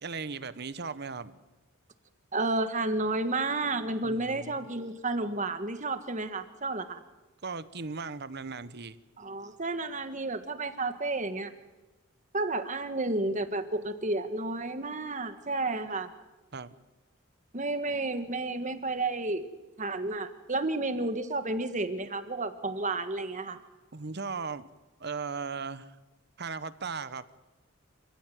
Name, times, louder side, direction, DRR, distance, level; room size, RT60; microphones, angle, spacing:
voice 1, 0.0-1.3 4.0-4.7 7.4-9.0 16.5-16.7 23.9-24.7 25.0-25.9 26.4-27.2, right 4 dB, 50° right, 15 dB, 1.0 m, -37 dB
voice 2, 2.3-7.0 9.2-11.5 12.3-16.1 17.5-19.5 19.8-23.6, right 2 dB, 35° right, 10 dB, 1.6 m, -31 dB
27.5 x 16.0 x 9.3 m, 1.1 s
head